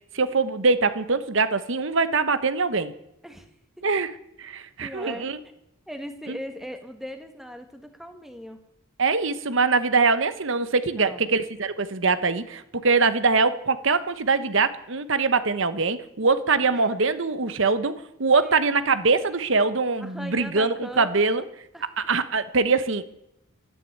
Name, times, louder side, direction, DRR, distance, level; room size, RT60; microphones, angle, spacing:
voice 1, 0.1-2.9 3.8-4.1 4.4-5.4 6.3-6.4 9.0-21.4 22.0-23.1, right 4 dB, 60° right, 1.0 m, -23 dB
voice 2, 4.8-5.3 5.9-8.6 10.9-11.3 16.7-16.9 18.4-18.6 20.0-21.3 21.7-21.8, equal, ahead, 1.6 m, -39 dB
13.0 x 10.0 x 9.5 m
head